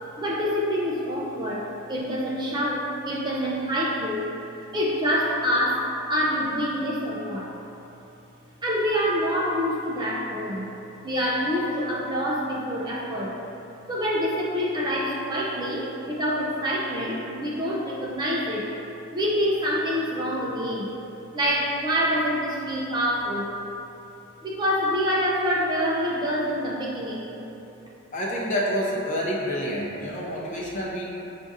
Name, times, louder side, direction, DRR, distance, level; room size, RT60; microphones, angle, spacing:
voice 1, 0.2-4.3 4.7-7.5 8.6-10.7 11.0-13.4 13.9-18.7 19.1-20.9 21.3-23.6 24.4-27.4, equal, 20° right, -5 dB, 0.4 m, -26 dB
voice 2, 28.1-31.1, equal, 35° left, -5 dB, 0.7 m, -28 dB
7.1 x 2.5 x 2.6 m, 3.0 s
head